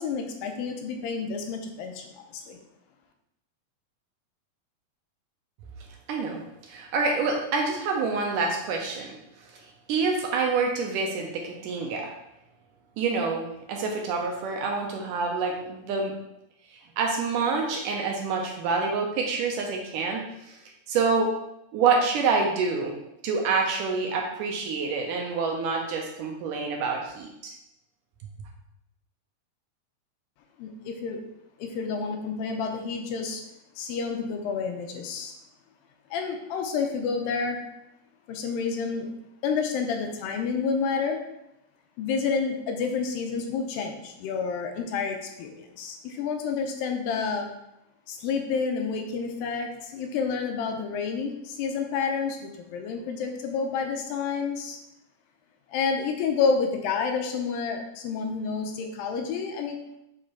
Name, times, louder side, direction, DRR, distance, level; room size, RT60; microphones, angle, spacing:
voice 1, 0.0-2.6 30.6-31.2 31.6-33.4 33.8-35.3 36.1-37.6 38.3-39.1 39.4-41.2 42.0-47.5 48.1-54.8 55.7-59.8, left 5 dB, 85° left, 4 dB, 2.4 m, -29 dB
voice 2, 6.1-9.1 9.9-12.1 13.0-16.1 17.0-20.6 20.9-21.3 21.7-22.9 23.2-27.6, right 4 dB, 75° right, 1 dB, 2.1 m, -27 dB
7.5 x 3.3 x 4.4 m, 0.84 s
omnidirectional pair, 4.1 m